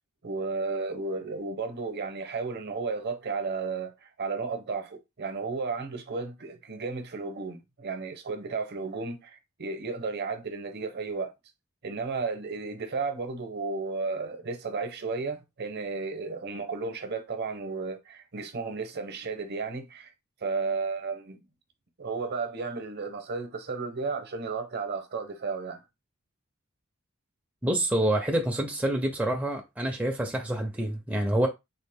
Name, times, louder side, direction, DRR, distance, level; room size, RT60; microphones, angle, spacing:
voice 1, 0.2-11.3 11.8-20.1 20.4-21.4 22.0-25.8, right 4 dB, 50° right, 0.8 m, -33 dB
voice 2, 27.6-31.5, right 1 dB, 5° right, 0.5 m, -27 dB
4.1 x 2.4 x 3.5 m
head